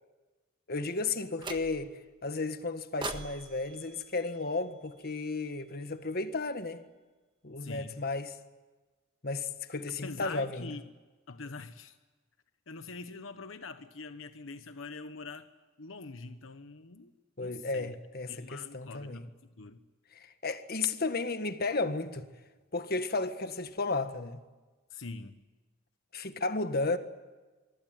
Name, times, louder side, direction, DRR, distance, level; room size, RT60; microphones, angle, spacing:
voice 1, 0.7-6.8 7.4-8.4 9.2-10.7 17.4-19.3 20.1-22.3 22.7-24.4 26.1-27.0, left 3 dB, 50° left, 1.6 m, -33 dB
sound 1, 1.4-2.1 3.0-5.2, right 3 dB, 25° right, 1.5 m, -43 dB
voice 2, 7.6-8.0 10.0-10.8 11.3-12.0 12.7-15.5 15.8-17.1 17.4-18.0 18.2-19.8 24.9-25.4, left 3 dB, 80° left, 1.2 m, -44 dB
24.5 x 24.5 x 9.4 m
head